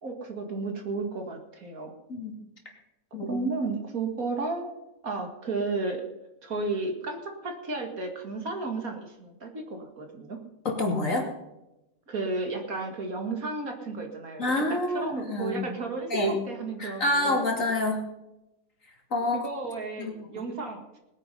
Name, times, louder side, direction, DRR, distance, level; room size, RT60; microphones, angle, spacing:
voice 1, 0.0-1.9 3.2-4.7 5.0-6.0 6.4-10.4 12.1-14.5 14.9-17.5 19.3-21.0, right 3 dB, 65° right, 3 dB, 2.5 m, -33 dB
voice 2, 10.6-11.3 14.4-15.7 16.1-16.4 16.8-18.0 19.1-19.5 20.0-20.1, left 2 dB, 55° left, 1 dB, 3.0 m, -27 dB
20.0 x 9.2 x 5.5 m, 0.94 s
omnidirectional pair, 1.6 m